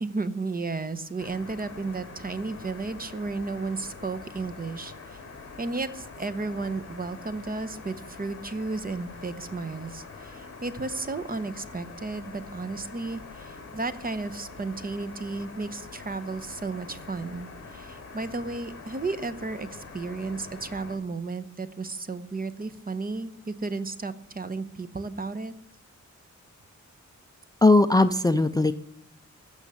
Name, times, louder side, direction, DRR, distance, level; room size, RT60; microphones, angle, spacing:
voice 1, 0.0-5.2 5.6-25.5, right 3 dB, 30° right, 11 dB, 0.9 m, -33 dB
sound 1, 1.2-21.0, left 4 dB, 45° left, 2.9 m, -44 dB
voice 2, 27.6-28.7, left 2 dB, 15° left, 12 dB, 0.4 m, -19 dB
15.0 x 7.1 x 8.1 m, 0.78 s
wide cardioid pair, 165°, 30 cm